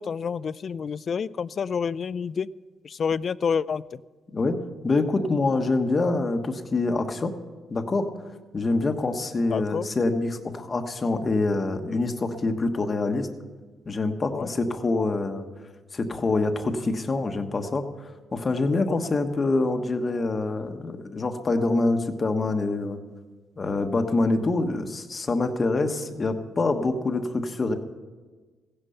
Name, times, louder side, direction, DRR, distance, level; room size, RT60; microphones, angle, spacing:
voice 1, 0.0-2.5 2.8-3.8 9.5-9.9 14.3-14.5 18.9-19.0, left 6 dB, 50° left, 19 dB, 0.4 m, -28 dB
voice 2, 4.3-7.3 7.7-8.1 8.5-13.3 13.8-15.5 15.9-17.8 18.3-23.0 23.6-27.7, left 3 dB, 35° left, 6 dB, 1.3 m, -25 dB
15.5 x 10.0 x 5.7 m, 1.4 s
cardioid pair, 90°, 0 cm